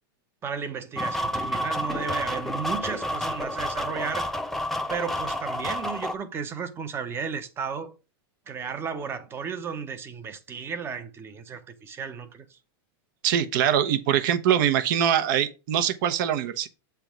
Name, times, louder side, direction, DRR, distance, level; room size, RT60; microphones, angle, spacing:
voice 1, 0.4-4.3 4.9-7.9 8.5-12.6, right 6 dB, 20° right, 0.8 m, -34 dB
sound 1, 1.0-6.1, equal, ahead, 0.5 m, -30 dB
voice 2, 13.2-16.7, right 9 dB, 55° right, 0.9 m, -23 dB
8.0 x 3.5 x 6.0 m
supercardioid pair, 155°, 13 cm